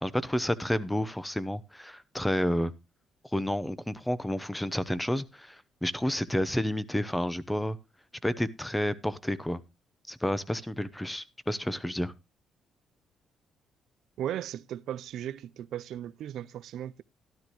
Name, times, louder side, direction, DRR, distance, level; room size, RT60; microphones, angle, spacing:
voice 1, 0.0-2.7 3.3-7.8 8.2-9.6 10.1-12.1, left 1 dB, 5° left, 0.9 m, -30 dB
voice 2, 14.2-17.0, right 11 dB, 75° right, 0.5 m, -36 dB
13.0 x 12.0 x 3.0 m
cardioid pair, 90°, 0 cm